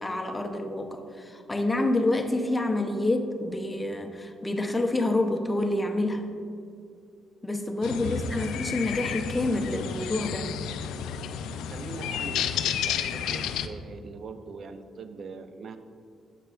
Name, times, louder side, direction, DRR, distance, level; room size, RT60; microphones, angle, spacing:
voice 1, 0.0-6.3 7.4-10.5, left 2 dB, 15° left, 4 dB, 0.6 m, -28 dB
sound 1, 7.8-13.7, left 8 dB, 85° left, 0.3 m, -31 dB
voice 2, 7.9-8.5 11.7-15.8, right 4 dB, 50° right, 9 dB, 0.4 m, -42 dB
7.6 x 6.6 x 2.4 m, 2.4 s
cardioid pair, 90°, 0 cm